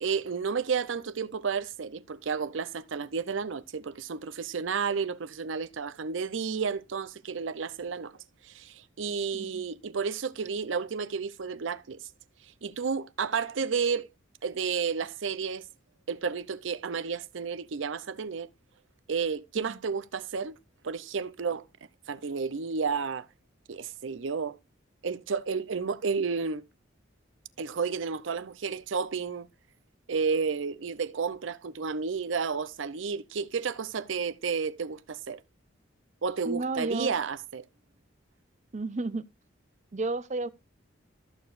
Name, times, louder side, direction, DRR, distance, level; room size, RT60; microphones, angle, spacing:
voice 1, 0.0-8.1 8.4-12.0 12.6-14.1 14.4-15.7 16.1-18.5 19.1-20.5 20.8-21.6 22.1-23.3 23.7-24.6 25.0-26.6 27.6-29.5 30.1-35.4 36.2-37.7, right 5 dB, 80° right, 0.6 m, -31 dB
voice 2, 9.3-9.6 19.6-19.8 36.4-37.1 38.7-39.2 39.9-40.5, right 3 dB, 40° right, 0.5 m, -32 dB
14.0 x 6.8 x 2.5 m
head